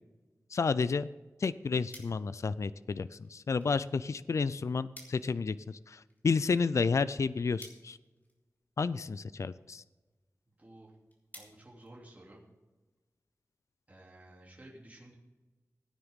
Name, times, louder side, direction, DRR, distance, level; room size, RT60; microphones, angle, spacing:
voice 1, 0.5-1.1 1.4-8.0 8.8-9.8, left 4 dB, 60° left, 16 dB, 0.4 m, -31 dB
sound 1, 1.9-12.6, left 1 dB, 30° left, 3.2 m, -59 dB
voice 2, 10.6-10.9 11.3-12.4 13.9-15.1, right 1 dB, 25° right, -4 dB, 3.0 m, -53 dB
16.5 x 9.8 x 3.7 m, 1.2 s
wide cardioid pair, 90°, 6 cm